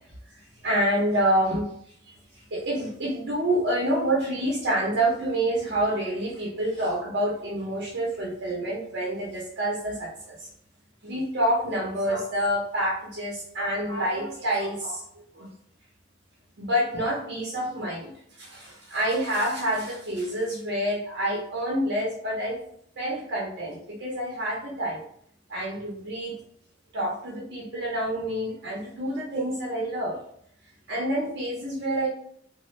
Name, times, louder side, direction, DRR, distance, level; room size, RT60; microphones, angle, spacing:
voice 1, 0.3-1.7 2.1-10.5 11.0-15.0 15.3-15.5 16.6-18.1 18.4-22.6 23.0-25.0 25.5-26.3 26.9-30.2 30.9-32.1, right 1 dB, 65° right, -4 dB, 0.8 m, -27 dB
3.0 x 2.2 x 3.1 m, 0.66 s
head